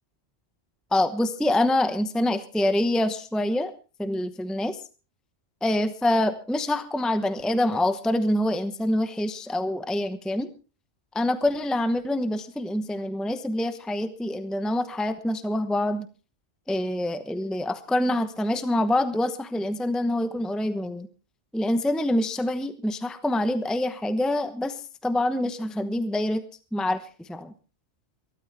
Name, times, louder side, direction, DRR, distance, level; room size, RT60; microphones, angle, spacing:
voice 1, 0.9-3.7 4.0-4.8 5.6-10.5 11.1-16.1 16.7-21.1 21.5-24.7 25.0-26.4 26.7-27.0 27.3-27.5, left 1 dB, ahead, 10 dB, 0.9 m, -26 dB
23.5 x 13.0 x 3.5 m, 0.35 s
omnidirectional pair, 1.2 m